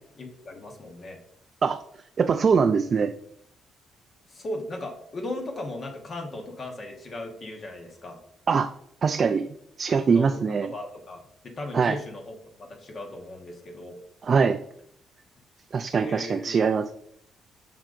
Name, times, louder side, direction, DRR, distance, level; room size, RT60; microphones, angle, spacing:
voice 1, 0.2-1.2 4.3-8.2 10.1-14.0 16.0-16.7, left 1 dB, 45° left, 2 dB, 1.1 m, -37 dB
voice 2, 2.2-3.1 8.5-8.7 9.0-9.5 9.8-10.7 11.7-12.0 14.2-14.6 15.7-16.9, right 5 dB, 45° right, 8 dB, 0.3 m, -22 dB
7.3 x 5.0 x 2.6 m, 0.71 s
cardioid pair, 90°, 0 cm